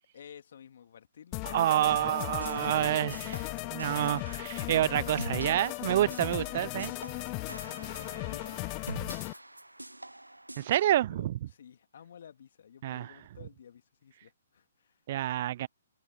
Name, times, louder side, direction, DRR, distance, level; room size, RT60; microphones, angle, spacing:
voice 1, 0.1-4.1 6.3-6.6 7.4-8.6 9.1-9.5 11.1-15.0, left 8 dB, 55° left, 2.8 m, -52 dB
sound 1, 1.3-9.3, left 32 dB, 30° left, 0.3 m, -37 dB
voice 2, 1.5-3.1 3.7-6.9 10.6-11.4 12.8-13.1 15.1-15.7, right 13 dB, 45° right, 0.6 m, -28 dB
sound 2, 2.1-10.9, right 1 dB, 90° right, 0.7 m, -45 dB
figure-of-eight pair, 130°, 0 cm